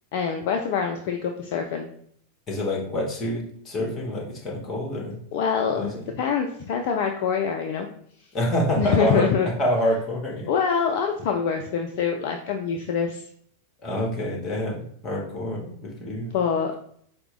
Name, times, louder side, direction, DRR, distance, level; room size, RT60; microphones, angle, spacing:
voice 1, 0.1-1.9 5.3-7.9 8.8-9.5 10.5-13.2 16.3-16.7, left 6 dB, 50° left, 3 dB, 0.4 m, -25 dB
voice 2, 2.5-5.2 5.7-5.9 8.3-9.3 9.6-10.5 13.8-14.8 15.0-16.3, equal, 25° left, -1 dB, 1.2 m, -27 dB
4.4 x 2.1 x 3.7 m, 0.64 s
figure-of-eight pair, 90°, 0 cm